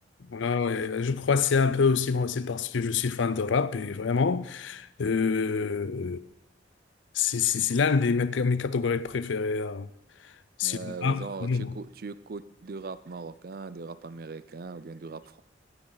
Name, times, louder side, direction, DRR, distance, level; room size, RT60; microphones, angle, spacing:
voice 1, 0.3-6.2 7.1-9.9 10.6-11.7, left 5 dB, 80° left, 0.5 m, -26 dB
voice 2, 10.6-15.4, right 4 dB, 50° right, 0.5 m, -39 dB
16.0 x 9.9 x 4.0 m
head